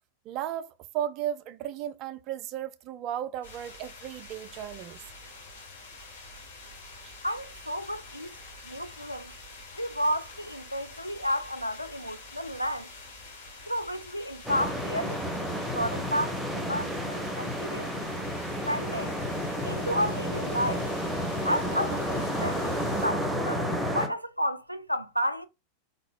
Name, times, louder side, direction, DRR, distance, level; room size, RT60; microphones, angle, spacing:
voice 1, 0.3-5.0 7.0-7.1, right 10 dB, 40° right, 0.5 m, -35 dB
sound 1, 3.4-23.1, left 3 dB, 60° left, 2.6 m, -47 dB
voice 2, 7.2-8.3 8.6-9.3 9.8-12.9 13.7-17.9 18.7-19.1 19.6-20.8 21.4-22.7 23.0-23.7 23.9-25.5, equal, 90° left, 0.5 m, -31 dB
sound 2, 14.4-24.1, equal, 5° right, 1.1 m, -31 dB
5.2 x 4.1 x 2.4 m
figure-of-eight pair, 90°, 0 cm